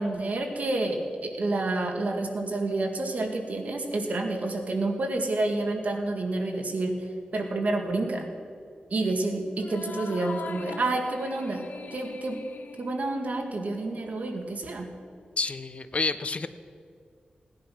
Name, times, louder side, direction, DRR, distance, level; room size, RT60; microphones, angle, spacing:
voice 1, 0.0-7.0 7.3-8.3 8.9-12.4 12.8-14.9, right 2 dB, 55° right, 3 dB, 2.0 m, -29 dB
sound 1, 9.6-14.3, left 5 dB, 70° left, 0.9 m, -42 dB
voice 2, 15.4-16.5, left 3 dB, 40° left, 12 dB, 0.6 m, -29 dB
17.5 x 10.5 x 5.9 m, 2.2 s
wide cardioid pair, 135°, 3 cm